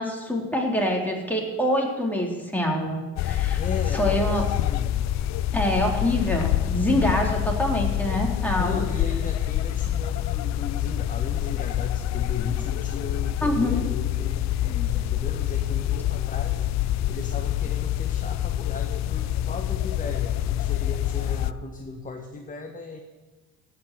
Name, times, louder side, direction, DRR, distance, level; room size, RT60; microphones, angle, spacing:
voice 1, 0.0-3.6 3.9-4.4 5.5-8.8 13.4-13.8, equal, 5° left, 0 dB, 3.7 m, -25 dB
sound 1, 3.2-21.5, left 12 dB, 45° left, 0.5 m, -26 dB
voice 2, 3.6-5.0 8.6-23.0, left 4 dB, 20° left, 3 dB, 1.6 m, -36 dB
16.5 x 6.1 x 7.9 m, 1.2 s
hypercardioid pair, 70°, 38 cm